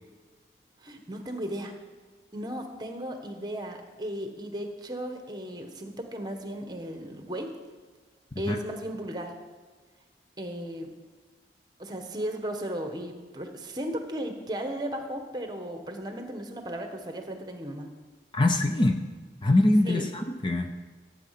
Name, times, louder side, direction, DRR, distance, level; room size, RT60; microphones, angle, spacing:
voice 1, 0.8-1.7 2.3-7.6 8.4-9.3 10.4-10.9 11.8-17.9 19.8-20.0, right 1 dB, 25° right, 5 dB, 1.2 m, -35 dB
voice 2, 18.3-19.0 19.4-20.7, left 1 dB, 25° left, 5 dB, 0.6 m, -23 dB
15.5 x 8.6 x 5.8 m, 1.4 s
head